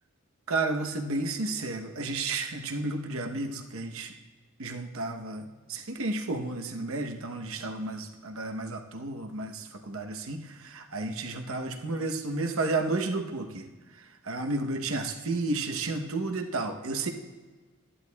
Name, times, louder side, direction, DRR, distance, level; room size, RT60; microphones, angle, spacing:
voice 1, 0.5-4.1 4.6-13.7 14.0-17.1, right 2 dB, 70° right, 4 dB, 0.9 m, -32 dB
15.0 x 11.0 x 2.3 m, 1.3 s
head